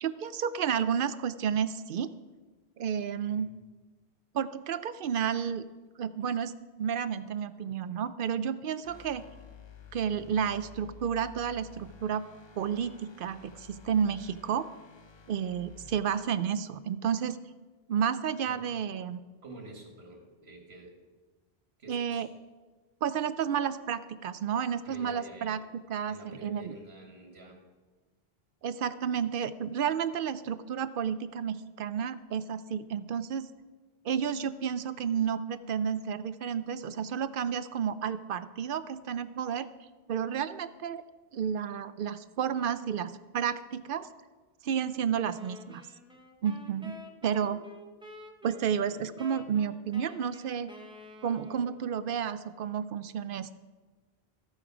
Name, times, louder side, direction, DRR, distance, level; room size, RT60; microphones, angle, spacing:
voice 1, 0.0-2.1 2.8-3.5 4.3-5.6 6.0-6.5 6.8-9.2 9.9-12.3 12.6-14.7 15.3-17.4 17.9-19.2 21.9-22.3 23.0-25.6 25.9-26.7 28.6-33.5 34.0-39.7 40.1-41.0 41.3-44.1 44.6-45.8 46.4-47.0 47.2-47.6 48.4-50.7 51.2-53.6, right 8 dB, 65° right, 14 dB, 0.7 m, -31 dB
sound 1, 8.8-16.0, left 7 dB, 30° left, 0.6 m, -52 dB
voice 2, 19.4-20.9 21.8-22.3 24.8-25.6 26.1-27.6 46.9-47.1, right 2 dB, 85° right, 2 dB, 2.0 m, -48 dB
sound 2, 45.3-51.9, left 2 dB, 5° right, 0.8 m, -50 dB
14.0 x 8.6 x 4.8 m, 1.3 s
omnidirectional pair, 1.0 m